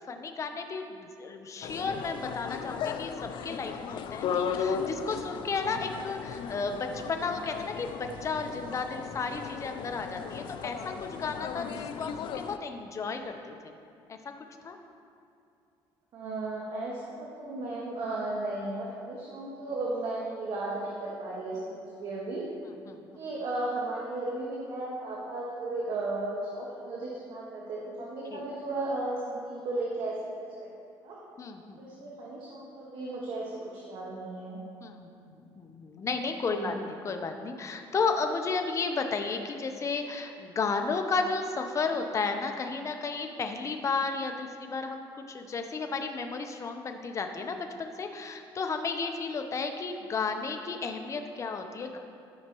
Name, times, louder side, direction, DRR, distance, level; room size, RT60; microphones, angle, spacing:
voice 1, 0.1-13.7 14.1-14.2 14.6-14.8 22.9-23.0 28.3-28.4 31.4-31.8 34.8-35.1 35.6-52.0, left 4 dB, 35° left, 5 dB, 0.8 m, -33 dB
sound 1, 1.6-12.6, left 7 dB, 65° left, 0.4 m, -36 dB
voice 2, 16.1-21.7 22.0-22.4 23.1-30.3 30.8-31.2 31.8-34.6 36.5-36.8, right 2 dB, 65° right, -5 dB, 1.5 m, -35 dB
13.5 x 5.8 x 3.0 m, 2.6 s
cardioid pair, 115°, 9 cm